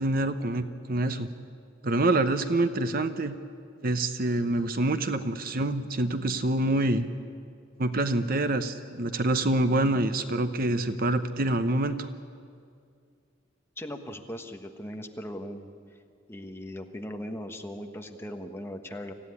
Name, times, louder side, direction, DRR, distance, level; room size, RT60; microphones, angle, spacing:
voice 1, 0.0-1.3 1.8-3.4 3.8-7.1 7.8-12.1, right 2 dB, 50° right, 9 dB, 0.9 m, -26 dB
voice 2, 13.8-15.7 16.3-19.1, equal, 15° left, 4 dB, 1.3 m, -39 dB
25.5 x 15.0 x 9.8 m, 2.3 s
head